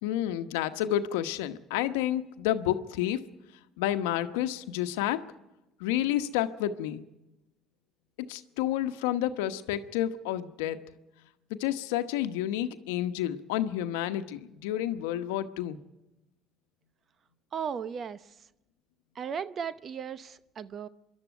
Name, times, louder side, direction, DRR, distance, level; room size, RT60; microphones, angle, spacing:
voice 1, 0.0-3.2 3.8-5.2 5.8-7.0 8.2-10.8 11.5-15.8, left 12 dB, 85° left, 10 dB, 1.0 m, -30 dB
voice 2, 17.5-18.5 19.1-20.9, right 7 dB, 50° right, 15 dB, 0.8 m, -36 dB
25.5 x 12.0 x 9.3 m, 0.94 s
hypercardioid pair, 65°, 0 cm